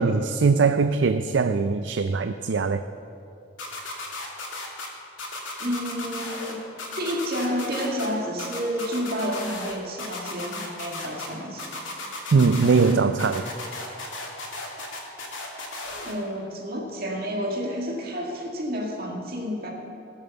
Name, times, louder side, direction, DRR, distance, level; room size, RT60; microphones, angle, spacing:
voice 1, 0.0-2.8 12.3-13.5, right 4 dB, 70° right, 9 dB, 0.4 m, -21 dB
sound 1, 3.6-4.9 5.2-6.5 6.8-8.1 8.4-9.7 10.0-11.3 11.6-12.9 13.2-16.1, left 3 dB, 85° left, 2.6 m, -35 dB
voice 2, 5.6-6.6 7.0-11.7 16.0-19.7, equal, 50° right, -1 dB, 2.2 m, -30 dB
18.5 x 7.2 x 6.9 m, 2.7 s
head